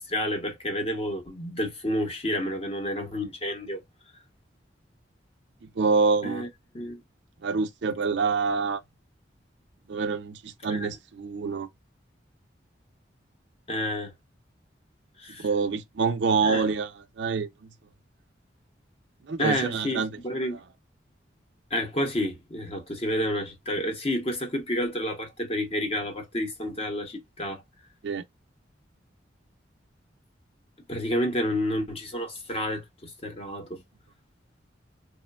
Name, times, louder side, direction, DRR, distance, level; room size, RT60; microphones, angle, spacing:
voice 1, 0.0-3.8 6.2-6.5 6.7-7.0 10.7-10.9 13.7-14.1 15.2-15.5 16.4-16.7 19.4-20.6 21.7-27.6 30.9-33.8, equal, 30° left, 0.8 m, -30 dB
voice 2, 5.8-6.4 7.4-8.8 9.9-11.7 15.4-16.9 17.2-17.5 19.3-20.1 28.0-28.2, right 4 dB, 70° right, 0.5 m, -26 dB
3.0 x 2.2 x 2.2 m
head